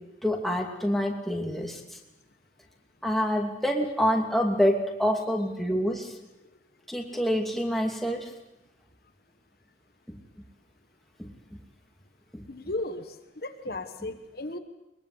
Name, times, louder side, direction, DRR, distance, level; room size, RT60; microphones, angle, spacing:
voice 1, 0.2-2.0 3.0-6.1 6.9-8.3 10.1-10.2 11.2-11.3 12.3-12.4, equal, ahead, 1 dB, 2.7 m, -27 dB
voice 2, 12.5-13.1 13.4-14.6, left 2 dB, 55° left, 7 dB, 1.4 m, -35 dB
22.5 x 22.0 x 8.2 m, 0.95 s
head